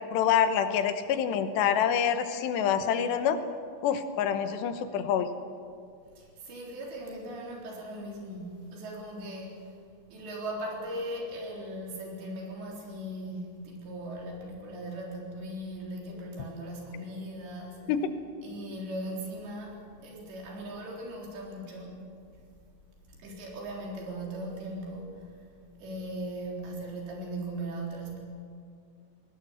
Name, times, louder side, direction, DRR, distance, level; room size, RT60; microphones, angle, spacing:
voice 1, 0.1-3.4 3.8-5.3 17.9-18.1, left 8 dB, 85° left, 9 dB, 3.3 m, -26 dB
voice 2, 6.2-9.8 10.1-18.0 18.4-22.0 23.1-25.3 25.8-28.2, right 1 dB, 85° right, -2 dB, 6.1 m, -39 dB
21.5 x 18.0 x 8.2 m, 2.3 s
omnidirectional pair, 4.9 m